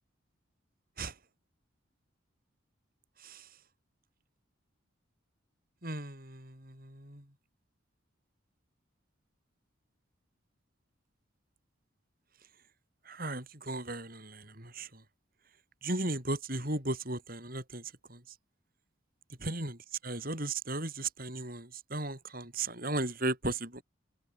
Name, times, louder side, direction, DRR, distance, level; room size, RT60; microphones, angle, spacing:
voice 1, 5.8-7.2 13.1-14.9 15.8-17.8 18.1-18.2 19.4-19.8 20.0-23.8, right 2 dB, 45° right, 7.7 m, -36 dB
open air
head